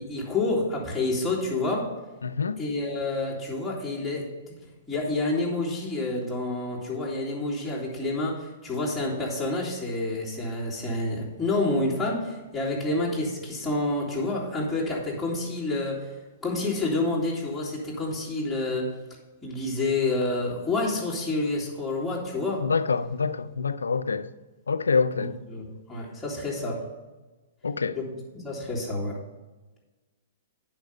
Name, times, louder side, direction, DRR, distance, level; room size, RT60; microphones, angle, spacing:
voice 1, 0.0-1.9 2.6-4.5 4.9-16.1 16.4-18.9 19.4-22.6 25.5-26.8 28.0-28.1 28.3-29.2, left 2 dB, 5° left, 3.5 m, -28 dB
voice 2, 2.2-2.6 22.6-24.3 24.7-25.4 27.6-28.0, left 5 dB, 85° left, 0.5 m, -26 dB
10.5 x 5.9 x 5.3 m
hypercardioid pair, 115°, 0 cm